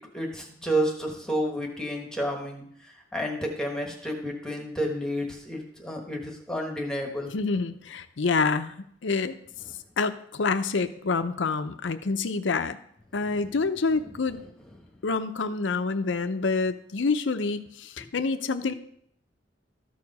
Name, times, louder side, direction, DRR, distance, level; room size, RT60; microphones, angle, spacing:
voice 1, 0.0-7.3 13.4-13.5, equal, 5° left, 1 dB, 1.3 m, -31 dB
voice 2, 7.3-8.7 9.0-9.4 10.0-12.8 13.1-14.4 15.0-18.7, left 4 dB, 85° left, 10 dB, 0.6 m, -27 dB
13.5 x 4.8 x 5.4 m, 0.69 s
head